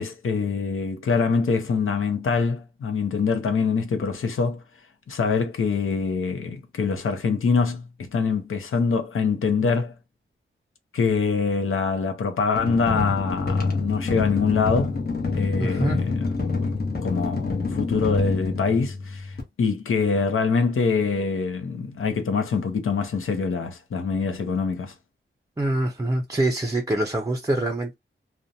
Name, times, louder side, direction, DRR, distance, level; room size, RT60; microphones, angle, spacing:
voice 1, 0.0-4.6 5.1-10.0 10.9-15.0 15.3-24.9, left 5 dB, 85° left, 0.6 m, -24 dB
sound 1, 12.5-19.4, left 3 dB, 50° left, 0.9 m, -27 dB
voice 2, 15.6-16.0 25.6-27.9, right 1 dB, 15° right, 0.4 m, -25 dB
2.5 x 2.1 x 2.7 m
wide cardioid pair, 100°, 21 cm